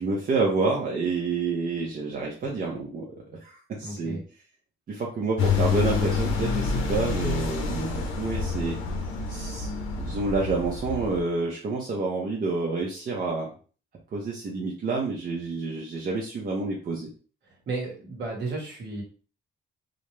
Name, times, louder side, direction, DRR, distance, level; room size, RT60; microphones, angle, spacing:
voice 1, 0.0-3.1 3.4-4.2 4.9-8.8 9.3-9.7 10.0-13.5 14.1-17.1, right 3 dB, 45° right, -2 dB, 0.6 m, -28 dB
voice 2, 3.8-4.2 17.7-19.0, right 3 dB, 60° right, 0 dB, 1.2 m, -33 dB
sound 1, 5.4-11.2, left 5 dB, 90° left, 0.6 m, -28 dB
2.5 x 2.0 x 3.0 m, 0.39 s
cardioid pair, 90°, 20 cm